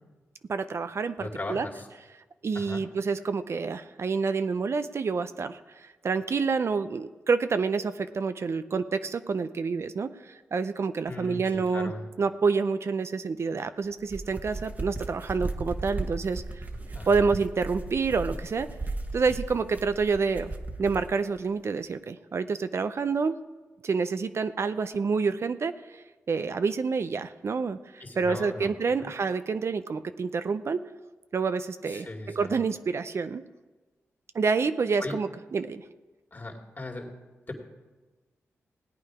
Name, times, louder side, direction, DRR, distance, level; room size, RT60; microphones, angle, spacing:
voice 1, 0.5-1.7 2.4-11.9 12.2-16.7 17.1-18.7 19.1-20.5 20.8-23.4 23.8-30.8 31.3-33.4 34.3-35.8, right 5 dB, 55° right, 11 dB, 0.5 m, -28 dB
voice 2, 1.2-1.9 2.5-2.8 11.1-12.1 16.9-17.3 28.0-28.7 29.0-29.1 31.9-32.6 35.0-35.2 36.3-37.1 37.5-37.6, left 2 dB, 40° left, 1 dB, 2.5 m, -38 dB
sound 1, 13.9-21.1, right 2 dB, 30° right, 1.3 m, -36 dB
17.0 x 8.9 x 4.8 m, 1.2 s
cardioid pair, 55°, 5 cm